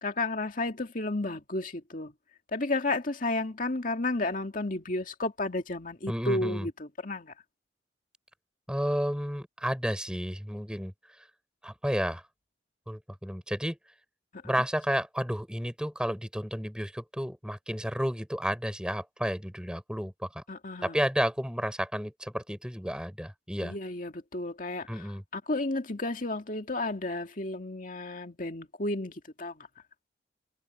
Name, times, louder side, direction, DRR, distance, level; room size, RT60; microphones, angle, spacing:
voice 1, 0.0-2.1 2.5-7.3 14.4-14.5 20.5-21.0 23.6-25.0 25.3-29.7, left 2 dB, 45° left, 2.3 m, -32 dB
voice 2, 6.1-6.7 8.7-10.9 11.6-12.2 12.9-13.8 14.4-20.4 20.8-23.8 24.9-25.2, equal, 5° right, 6.0 m, -31 dB
head